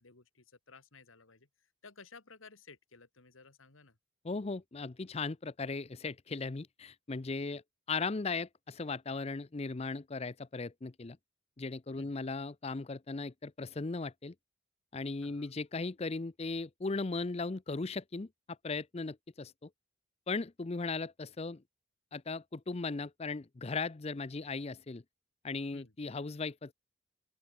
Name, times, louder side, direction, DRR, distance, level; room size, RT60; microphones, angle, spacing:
voice 1, 0.0-4.0 7.5-7.6 11.9-12.1 15.2-15.5 25.7-26.0, left 4 dB, 80° left, 2.2 m, -56 dB
voice 2, 4.2-7.6 7.9-11.2 11.6-14.3 14.9-18.3 18.6-19.7 20.3-21.6 22.1-25.0 25.4-26.7, left 3 dB, 30° left, 0.5 m, -37 dB
open air
head